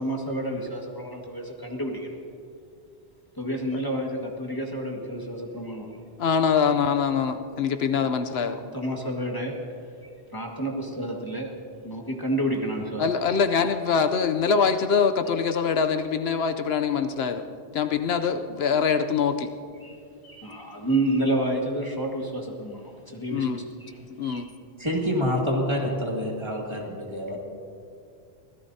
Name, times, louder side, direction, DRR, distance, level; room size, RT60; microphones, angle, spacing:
voice 1, 0.0-2.1 3.4-6.0 8.5-9.6 10.0-11.5 11.8-13.1 19.8-20.0 20.2-24.5, right 1 dB, 20° left, 0 dB, 1.7 m, -30 dB
voice 2, 6.2-8.6 13.0-17.5 17.7-19.5 23.3-23.6 24.2-24.5, left 6 dB, 75° left, 8 dB, 0.9 m, -24 dB
voice 3, 24.8-27.4, equal, 25° right, -2 dB, 2.3 m, -27 dB
23.5 x 16.5 x 2.7 m, 2.4 s
omnidirectional pair, 1.1 m